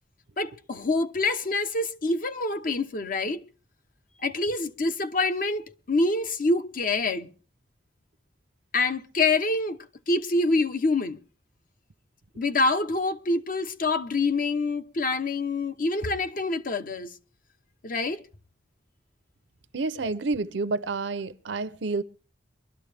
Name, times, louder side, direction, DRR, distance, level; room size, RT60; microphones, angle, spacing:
voice 1, 0.4-3.4 4.2-7.3 8.7-11.2 12.4-17.1 17.8-18.2 20.0-20.1, left 3 dB, 50° left, 0.8 m, -26 dB
voice 2, 19.7-22.0, right 3 dB, 85° right, 0.7 m, -29 dB
22.5 x 12.5 x 3.4 m
head